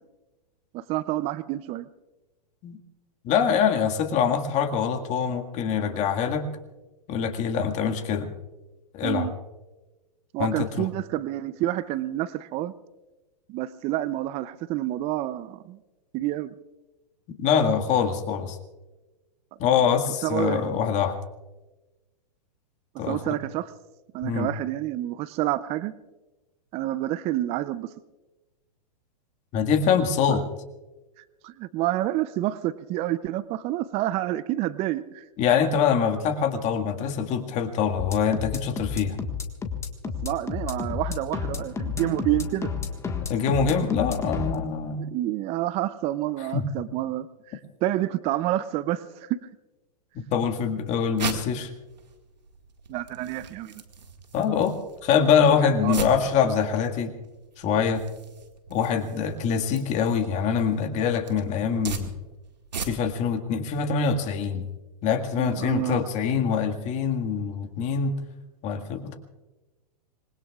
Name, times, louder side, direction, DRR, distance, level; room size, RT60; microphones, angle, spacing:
voice 1, 0.7-1.9 9.0-9.3 10.3-12.7 13.5-15.8 16.1-16.5 19.9-20.8 23.1-23.7 24.1-25.9 26.7-27.9 30.3-30.4 31.4-35.2 40.2-42.7 44.9-49.4 52.9-53.8 55.8-56.1 65.4-66.0, right 14 dB, 30° right, 16 dB, 0.6 m, -28 dB
voice 2, 3.2-6.4 7.1-8.3 8.9-9.3 10.4-10.9 17.4-18.6 19.6-21.2 23.0-23.4 24.2-24.5 29.5-30.4 35.4-39.2 43.3-45.0 46.5-46.6 50.1-51.7 54.3-54.8 55.0-57.1 57.6-58.0 58.7-62.1 62.9-64.7 65.0-68.1 68.6-69.1, left 7 dB, 35° left, 5 dB, 1.9 m, -24 dB
sound 1, 38.0-44.5, left 5 dB, 15° left, 1.6 m, -31 dB
sound 2, 50.5-63.3, right 5 dB, 85° right, 2.0 m, -40 dB
26.5 x 21.0 x 2.4 m, 1.1 s
hypercardioid pair, 120°, 21 cm